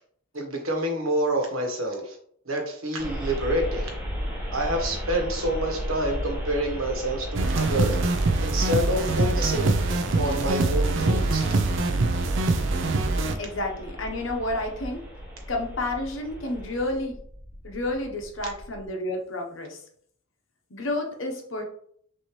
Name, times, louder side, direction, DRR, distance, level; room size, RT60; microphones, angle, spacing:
voice 1, 0.3-2.2 2.4-3.9 4.5-7.9 8.4-9.8 10.1-11.5, right 1 dB, 85° right, 2 dB, 1.3 m, -27 dB
sound 1, 3.0-18.9, equal, 10° right, 1.2 m, -35 dB
sound 2, 7.3-13.3, right 3 dB, 60° right, 0.5 m, -24 dB
voice 2, 13.4-15.0 15.5-17.2 17.6-19.8 20.7-21.6, left 1 dB, 65° left, 2 dB, 1.0 m, -30 dB
6.1 x 2.8 x 3.1 m, 0.63 s
head